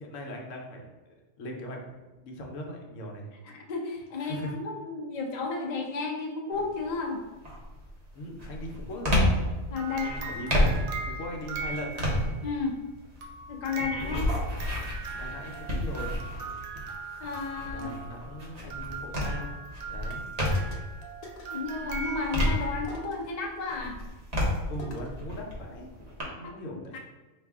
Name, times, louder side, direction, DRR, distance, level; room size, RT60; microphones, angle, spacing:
voice 1, 0.0-3.3 4.2-4.5 8.1-9.3 10.0-12.1 14.0-14.2 15.2-16.1 17.7-19.6 19.9-20.2 24.7-25.9 26.3-27.0, equal, 70° left, 1 dB, 1.0 m, -39 dB
voice 2, 3.4-7.2 9.7-10.2 12.4-12.8 13.5-14.3 17.2-17.9 21.5-24.0 26.4-26.6 26.9-27.0, left 4 dB, 45° left, 0 dB, 0.5 m, -33 dB
sound 1, 6.5-6.9 7.4-20.9 21.4-23.2 23.6-26.2, left 1 dB, 35° right, 0.9 m, -31 dB
sound 2, 9.7-12.4 13.2-23.0, right 4 dB, 85° right, 1.1 m, -40 dB
sound 3, 20.1-20.2 20.5-20.9 21.2-21.6 22.9-23.3 24.8-25.2, left 2 dB, 90° left, 1.2 m, -46 dB
5.1 x 2.4 x 3.4 m, 1.2 s
omnidirectional pair, 1.4 m